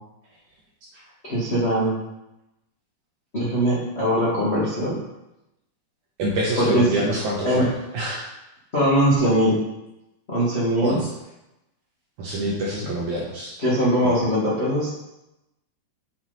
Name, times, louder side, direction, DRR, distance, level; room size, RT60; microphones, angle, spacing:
voice 1, 1.3-2.0 3.3-4.9 6.6-7.1 7.4-7.7 8.7-9.6 10.3-11.0 13.6-14.9, equal, 40° left, -8 dB, 0.8 m, -21 dB
voice 2, 6.2-8.3 10.8-11.1 12.2-13.6 14.0-14.1, right 1 dB, 70° right, -3 dB, 1.9 m, -26 dB
7.6 x 6.0 x 4.1 m, 0.93 s
omnidirectional pair, 4.5 m